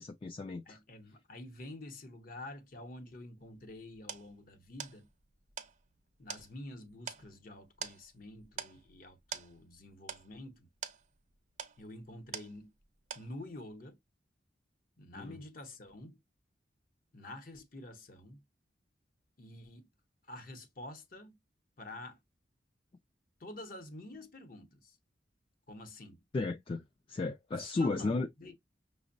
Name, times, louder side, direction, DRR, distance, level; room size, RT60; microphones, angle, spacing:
voice 1, 0.0-0.8 15.2-15.4 26.3-28.3, left 3 dB, 30° left, 0.3 m, -34 dB
voice 2, 0.7-5.1 6.2-10.7 11.8-12.7 13.1-14.0 15.0-16.2 17.1-18.4 19.4-19.9 20.3-21.4 21.8-22.2 23.4-25.0 25.7-26.2 27.6-28.5, left 1 dB, 50° left, 0.7 m, -48 dB
sound 1, 3.4-12.9 13.1-13.7, right 8 dB, 40° right, 0.5 m, -46 dB
5.8 x 2.0 x 2.5 m
head